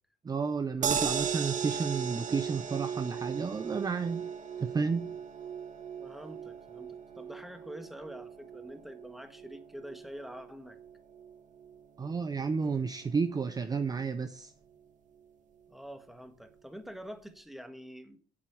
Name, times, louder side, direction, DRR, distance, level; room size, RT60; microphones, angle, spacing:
voice 1, 0.2-4.3 4.6-5.1 12.0-14.5, right 5 dB, 20° right, 0.6 m, -31 dB
sound 1, 0.8-13.1 13.4-13.5 13.8-13.9, right 7 dB, 45° right, 1.8 m, -38 dB
voice 2, 6.0-10.8 15.7-18.2, equal, ahead, 1.3 m, -46 dB
8.5 x 7.5 x 6.1 m
cardioid pair, 110°, 17 cm